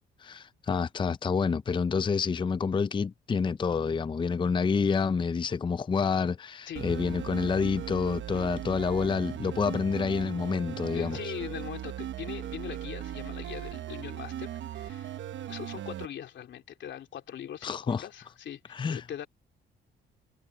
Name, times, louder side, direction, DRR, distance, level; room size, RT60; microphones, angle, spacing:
voice 1, 0.2-11.2 17.6-18.0 18.7-19.0, left 5 dB, 25° left, 0.5 m, -28 dB
sound 1, 6.8-16.1, right 11 dB, 70° right, 1.0 m, -38 dB
voice 2, 10.9-15.1 15.5-19.3, left 10 dB, 65° left, 3.0 m, -41 dB
cardioid pair, 90°, 20 cm